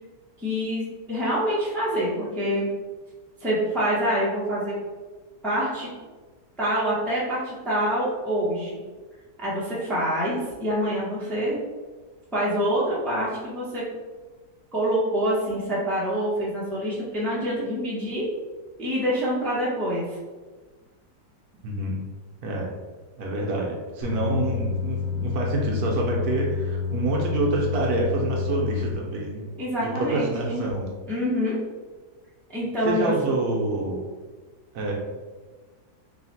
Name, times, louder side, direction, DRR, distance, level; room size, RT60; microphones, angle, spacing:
voice 1, 0.4-2.7 3.4-4.7 5.4-5.9 6.6-8.8 9.4-11.6 12.3-13.8 14.7-18.3 18.8-20.0 29.6-30.6 31.1-31.6 32.5-33.3, equal, ahead, -8 dB, 0.6 m, -26 dB
voice 2, 21.6-22.0 22.4-22.7 23.2-29.4 29.8-30.9 32.8-34.0 34.7-34.9, right 2 dB, 70° right, -1 dB, 1.1 m, -27 dB
sound 1, 24.0-28.9, left 6 dB, 50° left, 0.8 m, -29 dB
3.1 x 2.8 x 4.1 m, 1.3 s
omnidirectional pair, 1.8 m